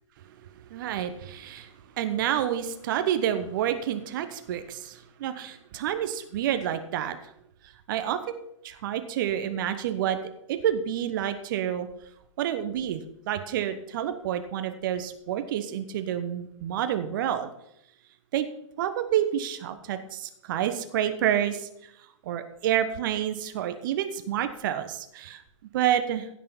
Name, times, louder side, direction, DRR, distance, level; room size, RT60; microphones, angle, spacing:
voice 1, 0.7-7.3 7.9-8.4 8.6-10.2 10.5-11.9 12.4-13.0 13.3-17.5 18.3-18.5 18.8-21.9 22.2-25.4 25.7-26.3, right 10 dB, 40° right, 9 dB, 1.1 m, -29 dB
16.0 x 6.7 x 5.4 m, 0.78 s
figure-of-eight pair, 115°, 16 cm